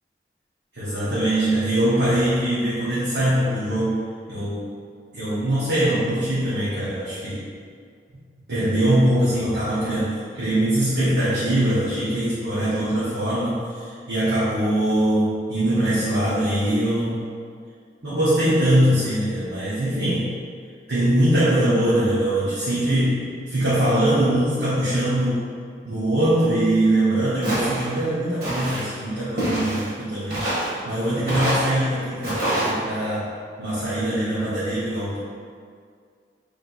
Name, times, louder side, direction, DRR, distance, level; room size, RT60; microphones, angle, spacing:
voice 1, 0.7-4.7 5.1-7.5 8.1-8.2 8.5-17.2 18.0-20.3 20.9-25.4 25.8-33.3 33.6-35.2, right 1 dB, 70° right, -12 dB, 1.0 m, -22 dB
Walk footsteps, 27.4-27.9 28.4-28.8 29.4-29.9 30.3-30.7 31.3-31.7 32.2-32.7, right 1 dB, 55° right, 1.3 m, -25 dB
3.3 x 2.7 x 4.0 m, 2.1 s
head